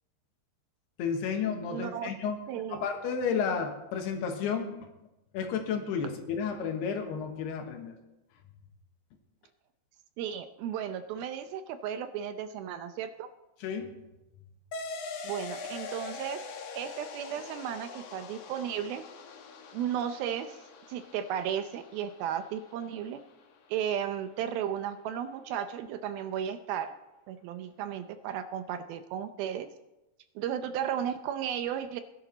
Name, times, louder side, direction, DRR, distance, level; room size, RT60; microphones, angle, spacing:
voice 1, 1.0-2.4 2.7-4.8 5.3-8.0 13.6-13.9, left 6 dB, 85° left, 4 dB, 3.4 m, -32 dB
voice 2, 1.7-2.1 2.5-2.9 10.2-13.3 15.2-16.5 16.8-19.0 19.7-20.6 20.9-23.2 23.7-26.9 27.3-29.7 30.4-32.0, right 9 dB, 80° right, 9 dB, 2.3 m, -34 dB
sound 1, 14.7-23.7, left 4 dB, 65° left, 1.7 m, -44 dB
19.0 x 11.5 x 4.0 m, 0.97 s
omnidirectional pair, 4.6 m